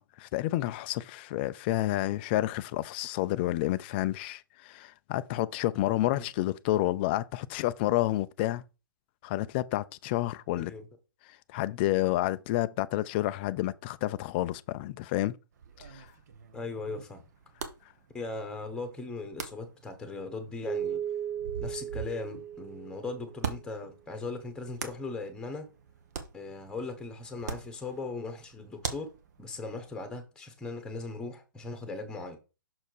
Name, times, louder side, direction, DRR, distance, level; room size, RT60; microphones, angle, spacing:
voice 1, 0.0-8.6 9.2-10.7 11.5-15.3 15.9-16.1, left 15 dB, 30° left, 0.4 m, -29 dB
voice 2, 10.5-10.8 16.5-17.2 18.1-21.0 21.6-25.7 26.3-29.1 29.4-32.4, left 3 dB, 5° left, 1.5 m, -38 dB
sound 1, 15.5-30.0, right 6 dB, 50° right, 1.2 m, -44 dB
Keyboard (musical), 20.7-23.6, right 9 dB, 25° right, 1.1 m, -36 dB
6.3 x 4.4 x 4.7 m
figure-of-eight pair, 125°, 12 cm